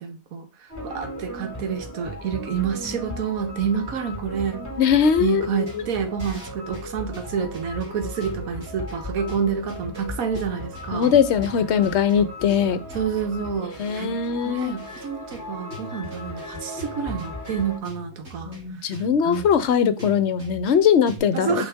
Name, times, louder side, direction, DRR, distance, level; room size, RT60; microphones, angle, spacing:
voice 1, 0.0-4.7 5.2-11.1 12.9-18.5 19.2-19.5 21.3-21.7, right 7 dB, 80° right, 1.5 m, -28 dB
sound 1, 0.7-17.8, left 1 dB, 10° left, 2.8 m, -37 dB
voice 2, 4.8-5.8 10.9-12.8 13.8-14.7 18.5-21.6, left 7 dB, 60° left, 0.9 m, -21 dB
sound 2, 5.6-21.2, equal, 50° right, 3.6 m, -43 dB
5.8 x 5.3 x 3.5 m
omnidirectional pair, 1.5 m